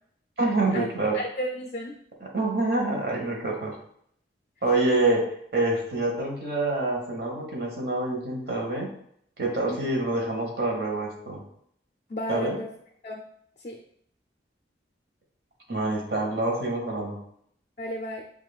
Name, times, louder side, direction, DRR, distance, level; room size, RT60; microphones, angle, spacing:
voice 1, 0.4-1.2 2.2-3.7 4.6-5.2 5.5-8.9 9.4-11.4 12.3-12.6 15.7-17.2, right 2 dB, 55° right, -1 dB, 1.1 m, -26 dB
voice 2, 1.1-2.0 5.0-5.1 9.7-9.9 12.1-12.7 13.0-13.2 13.6-13.8 17.8-18.2, left 1 dB, 40° left, 0 dB, 0.4 m, -33 dB
7.2 x 2.5 x 2.3 m, 0.68 s
head